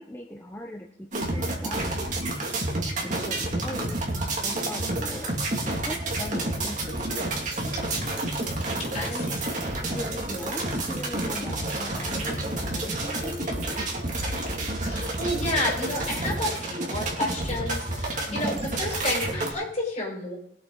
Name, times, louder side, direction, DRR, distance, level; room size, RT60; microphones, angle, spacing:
voice 1, 0.0-2.5 3.0-7.1 9.0-9.4 9.8-13.5 18.3-18.6, equal, 10° left, 1 dB, 0.9 m, -39 dB
sound 1, 1.1-19.5, right 2 dB, 45° right, 2.6 m, -29 dB
voice 2, 8.8-9.4 14.8-20.4, left 1 dB, 40° left, -2 dB, 5.8 m, -31 dB
21.0 x 8.2 x 4.0 m, 0.74 s
head